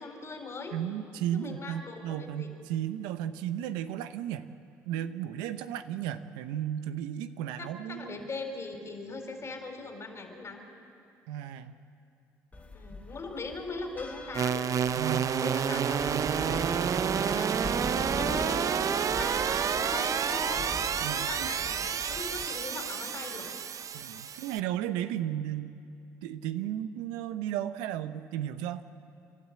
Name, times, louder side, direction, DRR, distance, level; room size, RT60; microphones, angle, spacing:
voice 1, 0.0-0.8 1.3-2.5 7.6-10.6 12.7-14.7 15.4-16.7 17.0-20.7 21.2-23.5, left 3 dB, 40° left, 4 dB, 4.4 m, -40 dB
voice 2, 0.7-4.5 4.8-8.2 11.3-11.7 15.0-15.4 21.0-21.5 23.9-25.8 26.2-28.8, right 11 dB, 85° right, 10 dB, 0.8 m, -34 dB
sound 1, 12.5-22.4, left 2 dB, 20° left, 2.8 m, -43 dB
sound 2, 14.3-24.6, right 7 dB, 50° right, 0.7 m, -29 dB
28.0 x 12.5 x 8.9 m, 2.5 s
supercardioid pair, 60°, 7 cm